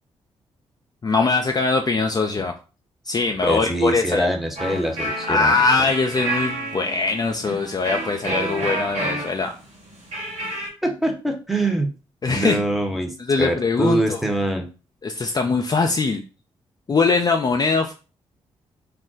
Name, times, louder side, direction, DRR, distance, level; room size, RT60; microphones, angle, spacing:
voice 1, 1.0-2.5 3.1-4.3 5.3-9.6 12.2-12.7 13.2-14.2 15.0-16.2 16.9-17.9, left 4 dB, 30° left, 3 dB, 0.4 m, -21 dB
voice 2, 3.4-5.5 10.8-11.9 12.3-14.7, right 1 dB, ahead, 2 dB, 0.8 m, -24 dB
sound 1, 4.6-10.7, right 2 dB, 55° right, 1.3 m, -29 dB
2.4 x 2.0 x 3.9 m, 0.34 s
hypercardioid pair, 40°, 13 cm